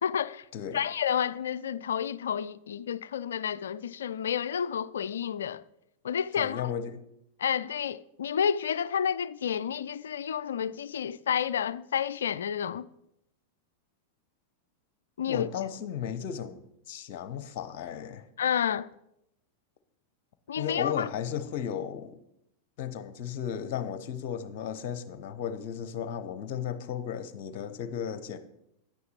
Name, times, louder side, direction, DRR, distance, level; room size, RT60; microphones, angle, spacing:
voice 1, 0.0-0.4 0.7-5.6 6.0-6.7 7.4-12.9 15.2-15.5 18.4-18.9 20.5-21.1, left 8 dB, 65° left, 0.3 m, -30 dB
voice 2, 6.4-7.0 15.3-18.3 20.6-22.2 22.8-28.4, left 8 dB, 45° left, 0.8 m, -35 dB
10.0 x 9.5 x 4.2 m
figure-of-eight pair, 90°, 0 cm